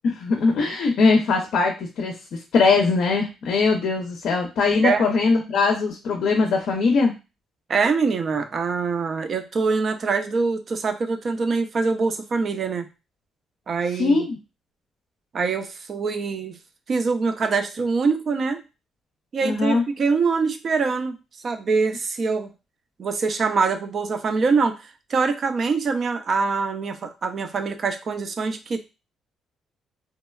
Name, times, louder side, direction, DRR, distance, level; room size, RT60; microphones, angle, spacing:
voice 1, 0.0-7.1 14.0-14.4 19.4-19.8, left 4 dB, 70° left, 3 dB, 0.5 m, -21 dB
voice 2, 7.7-12.9 13.7-14.3 15.3-16.6 16.9-18.6 19.3-21.2 21.4-22.5 23.0-24.8 25.1-28.9, right 4 dB, 50° right, 8 dB, 0.4 m, -24 dB
2.8 x 2.2 x 2.2 m, 0.28 s
cardioid pair, 90°, 0 cm